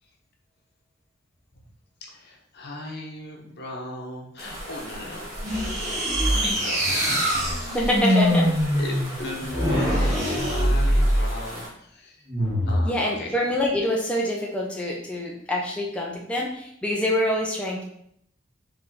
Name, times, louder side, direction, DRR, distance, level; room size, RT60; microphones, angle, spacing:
voice 1, 2.0-7.9 8.7-12.2 12.7-13.3, left 1 dB, 55° left, 0 dB, 0.9 m, -37 dB
sound 1, 4.4-11.7, equal, 15° right, 1.5 m, -37 dB
sound 2, 5.4-11.4 12.3-12.9, equal, 35° right, 1.9 m, -23 dB
voice 2, 7.7-8.5 12.9-17.8, left 1 dB, 5° left, -2 dB, 0.5 m, -25 dB
4.2 x 3.3 x 3.7 m, 0.71 s
head